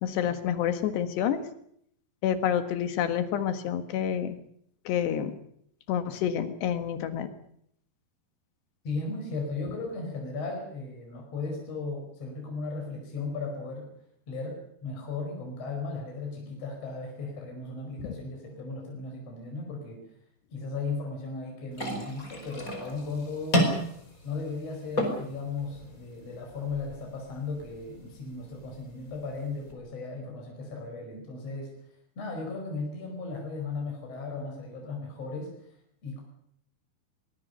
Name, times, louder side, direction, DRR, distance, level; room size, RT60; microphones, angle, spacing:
voice 1, 0.0-1.4 2.2-4.4 4.9-5.3 5.9-7.3 18.0-18.1, left 9 dB, 80° left, 9 dB, 3.8 m, -28 dB
voice 2, 8.8-13.9 14.3-20.0 20.5-23.7 24.2-31.7 32.2-35.5 36.0-36.2, left 3 dB, 35° left, 1 dB, 5.9 m, -36 dB
sound 1, 21.7-29.7, equal, 20° left, 4.8 m, -34 dB
23.5 x 21.0 x 6.8 m, 0.70 s
omnidirectional pair, 4.8 m